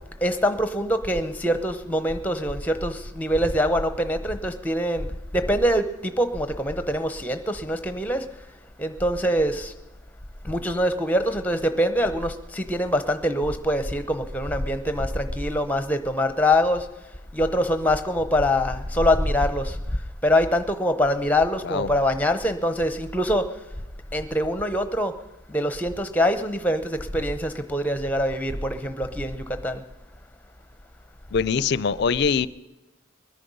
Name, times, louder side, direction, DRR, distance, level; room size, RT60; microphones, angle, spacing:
voice 1, 0.2-5.1 5.3-8.3 8.8-9.7 10.4-16.9 17.3-19.8 20.2-23.5 24.1-25.1 25.5-29.8, equal, 10° left, 10 dB, 0.7 m, -24 dB
voice 2, 31.3-32.5, left 5 dB, 55° left, 19 dB, 0.4 m, -23 dB
21.0 x 10.0 x 5.5 m, 1.1 s
head